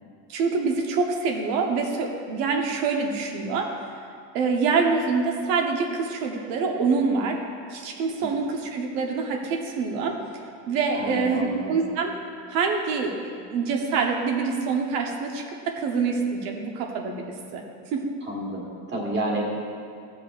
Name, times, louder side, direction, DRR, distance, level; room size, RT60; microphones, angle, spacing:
voice 1, 0.3-3.8 4.3-7.4 7.7-10.2 10.7-12.1 12.5-17.2 17.5-17.6 17.9-18.1, right 4 dB, 85° right, 2 dB, 1.0 m, -25 dB
voice 2, 10.9-11.8 18.2-19.4, right 2 dB, 25° right, -2 dB, 1.4 m, -30 dB
13.5 x 7.8 x 2.4 m, 2.3 s
cardioid pair, 160°, 45 cm